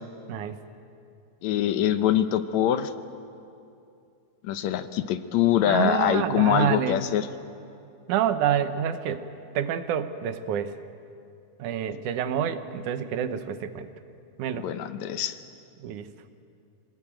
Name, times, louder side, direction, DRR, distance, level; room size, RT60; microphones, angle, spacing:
voice 1, 1.4-2.9 4.4-7.3 14.5-15.4, left 11 dB, 75° left, 11 dB, 2.1 m, -24 dB
voice 2, 5.7-7.0 8.1-9.2 9.5-10.7 11.6-13.9 14.4-14.7 15.8-16.1, right 9 dB, 90° right, 10 dB, 2.5 m, -27 dB
26.0 x 19.5 x 8.9 m, 2.5 s
omnidirectional pair, 3.4 m